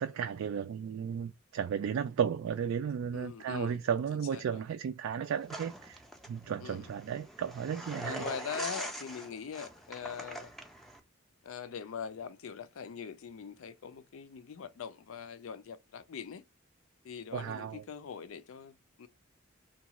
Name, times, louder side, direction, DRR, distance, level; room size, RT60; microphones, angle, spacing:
voice 1, 0.0-6.0 6.3-8.2 8.5-8.6 17.3-17.8, right 7 dB, 80° right, 0.3 m, -34 dB
voice 2, 3.1-3.8 4.1-4.6 6.6-6.9 8.0-10.5 11.4-16.4 17.0-19.1, left 6 dB, 85° left, 0.4 m, -42 dB
sound 1, 5.5-11.0, right 1 dB, ahead, 0.4 m, -43 dB
2.9 x 2.3 x 2.8 m
head